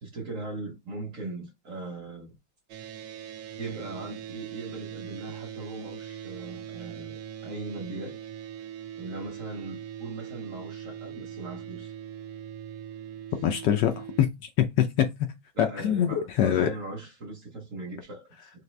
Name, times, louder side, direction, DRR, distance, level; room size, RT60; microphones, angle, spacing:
voice 1, 0.0-2.4 3.6-8.2 9.0-11.9 15.5-18.5, right 2 dB, 45° right, 1.3 m, -39 dB
sound 1, 2.7-14.2, right 10 dB, 70° right, 1.3 m, -41 dB
voice 2, 13.4-14.3 14.6-15.1 15.6-16.7, left 10 dB, 70° left, 1.1 m, -24 dB
4.2 x 2.8 x 3.2 m
omnidirectional pair, 2.2 m